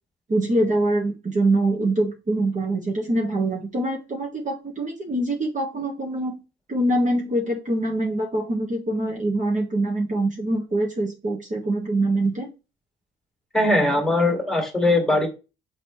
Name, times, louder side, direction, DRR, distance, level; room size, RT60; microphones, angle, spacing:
voice 1, 0.3-6.4 6.7-12.5, right 1 dB, 35° right, 0 dB, 1.5 m, -24 dB
voice 2, 13.5-15.3, left 1 dB, ahead, 2 dB, 2.0 m, -20 dB
6.5 x 5.1 x 3.1 m, 0.30 s
cardioid pair, 100°, 21 cm